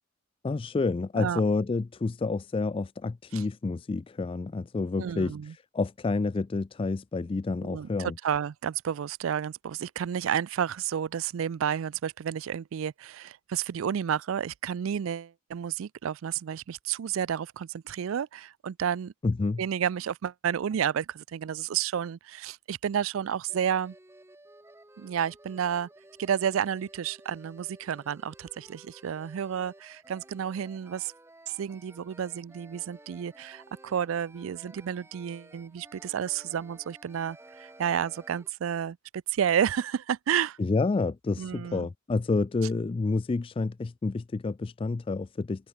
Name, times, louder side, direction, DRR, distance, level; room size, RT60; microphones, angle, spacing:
voice 1, 0.4-5.3 5.7-8.1 19.2-19.6 40.6-45.7, left 3 dB, 25° left, 0.3 m, -29 dB
voice 2, 5.0-5.5 7.6-19.1 19.6-23.9 25.0-25.9 26.2-31.1 31.6-40.6 41.4-41.9, right 8 dB, 85° right, 0.4 m, -31 dB
sound 1, 23.5-38.5, right 2 dB, 15° right, 1.0 m, -54 dB
open air
head